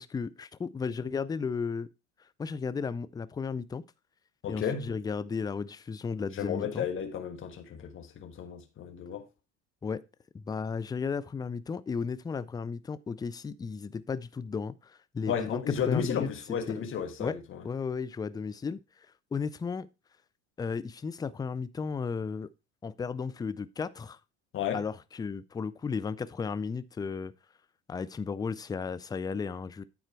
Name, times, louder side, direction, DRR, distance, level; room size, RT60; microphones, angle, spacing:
voice 1, 0.0-1.9 2.4-3.8 4.5-6.9 9.8-10.0 10.3-16.3 16.7-16.9 17.2-17.4 17.6-18.8 19.3-19.9 20.6-22.5 22.8-24.2 24.7-27.3 27.9-29.8, left 5 dB, 10° left, 0.4 m, -34 dB
voice 2, 4.4-4.9 6.3-9.2 15.3-17.6 24.5-24.8, left 7 dB, 35° left, 1.4 m, -33 dB
9.4 x 4.3 x 4.5 m
supercardioid pair, 95°, 35 cm